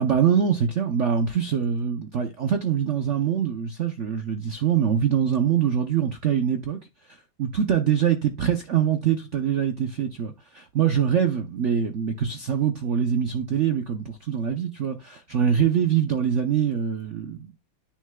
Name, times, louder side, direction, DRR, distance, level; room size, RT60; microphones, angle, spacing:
voice 1, 0.0-6.8 7.4-17.5, right 8 dB, 65° right, 0.7 m, -24 dB
9.9 x 6.3 x 2.2 m
omnidirectional pair, 2.1 m